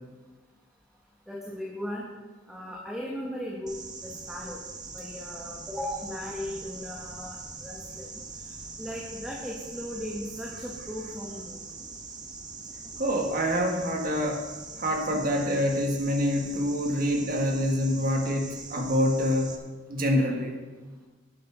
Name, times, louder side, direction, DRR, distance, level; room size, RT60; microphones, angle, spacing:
voice 1, 1.3-2.1 2.5-3.7 4.0-4.6 4.9-8.1 8.8-11.6, left 1 dB, 5° right, -3 dB, 1.4 m, -37 dB
sound 1, 3.7-19.6, right 4 dB, 20° right, 1.0 m, -42 dB
voice 2, 13.0-14.4 14.8-19.5 19.9-20.5, equal, 45° right, 2 dB, 1.6 m, -26 dB
9.4 x 9.2 x 6.0 m, 1.3 s
head